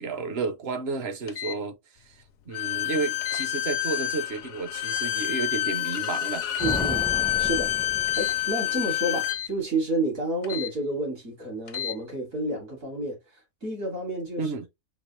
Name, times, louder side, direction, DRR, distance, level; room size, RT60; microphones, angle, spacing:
voice 1, 0.0-1.8 2.0-6.5 14.4-14.7, right 4 dB, 55° right, 1.0 m, -32 dB
sound 1, 1.3-1.6 3.2-3.5 4.8-5.1 6.5-6.9 8.1-8.4 9.2-9.5 10.4-10.7 11.7-12.0, left 9 dB, 50° left, 0.6 m, -35 dB
Bowed string instrument, 2.5-9.4, left 13 dB, 75° left, 1.0 m, -28 dB
sound 2, 6.6-8.9, left 1 dB, ahead, 0.3 m, -35 dB
voice 2, 6.6-7.1 7.4-7.7 8.1-13.2 13.6-14.4, right 1 dB, 75° right, 3.2 m, -30 dB
5.3 x 2.9 x 3.1 m
omnidirectional pair, 1.4 m